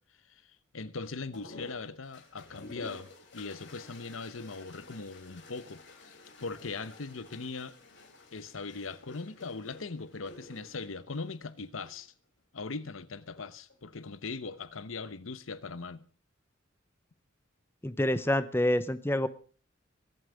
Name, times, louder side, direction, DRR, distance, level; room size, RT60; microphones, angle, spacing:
voice 1, 0.7-6.2 6.4-7.7 8.3-12.1 12.5-16.0, left 4 dB, 85° left, 1.0 m, -40 dB
Toilet flush, 1.3-12.0 13.2-13.8, left 2 dB, 60° left, 3.3 m, -51 dB
voice 2, 17.8-19.3, left 1 dB, 10° left, 0.7 m, -27 dB
22.5 x 8.0 x 5.1 m
head